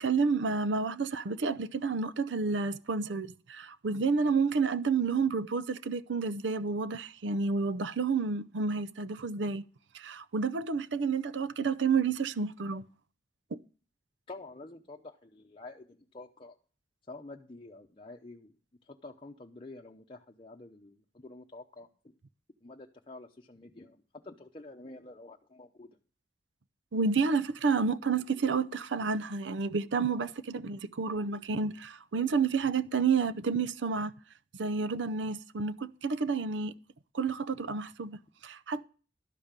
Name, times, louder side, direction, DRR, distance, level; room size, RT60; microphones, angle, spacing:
voice 1, 0.0-9.6 9.9-12.8 13.5-13.6 26.9-34.1 34.5-36.7 37.1-38.8, right 5 dB, 85° right, 0.6 m, -30 dB
voice 2, 14.3-16.6 17.1-18.5 18.9-21.9 22.6-26.0, left 2 dB, 30° left, 0.8 m, -48 dB
12.5 x 5.2 x 7.2 m
head